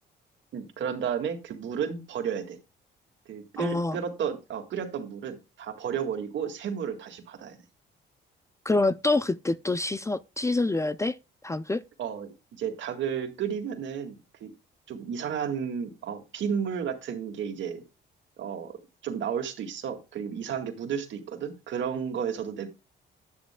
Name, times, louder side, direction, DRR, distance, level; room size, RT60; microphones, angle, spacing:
voice 1, 0.5-2.6 3.3-7.6 12.0-14.5 14.9-17.8 18.4-22.7, right 7 dB, 70° right, 2.0 m, -32 dB
voice 2, 3.6-4.0 8.7-11.2 11.4-11.8, left 2 dB, 15° left, 0.4 m, -26 dB
9.8 x 9.4 x 2.2 m
cardioid pair, 90°, 20 cm